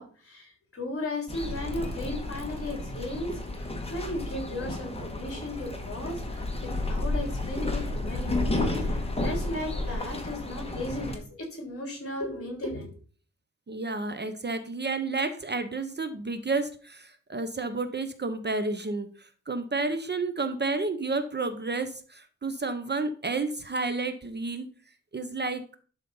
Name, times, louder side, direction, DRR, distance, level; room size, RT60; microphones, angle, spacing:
voice 1, 0.0-8.6 8.8-12.9, left 1 dB, 45° left, 1 dB, 3.4 m, -36 dB
sound 1, 1.3-11.2, left 2 dB, 20° left, 1.4 m, -32 dB
voice 2, 13.7-24.7 25.1-25.6, right 3 dB, 35° right, 9 dB, 0.8 m, -31 dB
11.5 x 4.1 x 5.5 m, 0.42 s
wide cardioid pair, 155°, 31 cm